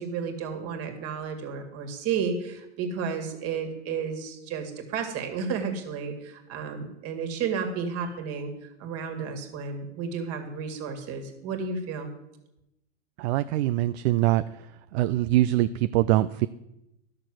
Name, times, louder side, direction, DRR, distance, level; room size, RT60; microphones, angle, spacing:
voice 1, 0.0-12.1, right 6 dB, 45° right, 5 dB, 2.1 m, -32 dB
voice 2, 13.2-14.4 14.9-16.5, right 15 dB, 65° right, 13 dB, 0.5 m, -23 dB
11.5 x 6.7 x 6.1 m, 0.88 s
hypercardioid pair, 115°, 34 cm